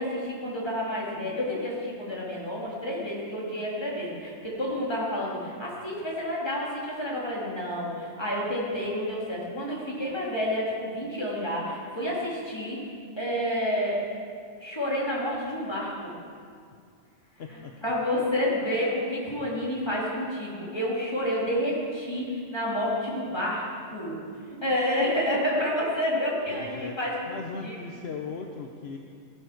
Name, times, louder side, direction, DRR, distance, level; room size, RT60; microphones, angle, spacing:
voice 1, 0.0-12.9 13.2-14.0 14.6-16.1 17.5-24.2 24.6-27.2 27.6-27.8, left 1 dB, 20° left, -5 dB, 3.0 m, -29 dB
voice 2, 17.4-17.7 26.5-27.0 27.3-29.0, left 5 dB, 65° left, 2 dB, 1.1 m, -37 dB
15.0 x 9.6 x 5.9 m, 2.3 s
omnidirectional pair, 1.2 m